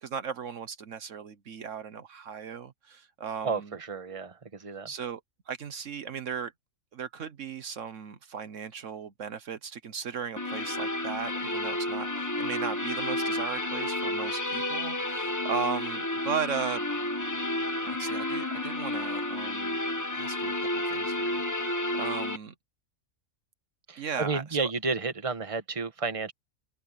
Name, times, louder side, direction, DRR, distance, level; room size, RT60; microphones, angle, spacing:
voice 1, 0.0-3.7 4.9-5.2 5.5-6.5 6.9-16.8 17.8-19.8 20.1-22.5 24.0-24.7, right 6 dB, 70° right, 1.3 m, -37 dB
voice 2, 3.4-4.9 23.9-26.3, right 4 dB, 25° right, 1.4 m, -32 dB
sound 1, 10.4-22.4, left 1 dB, 15° left, 1.4 m, -31 dB
open air
omnidirectional pair, 1.4 m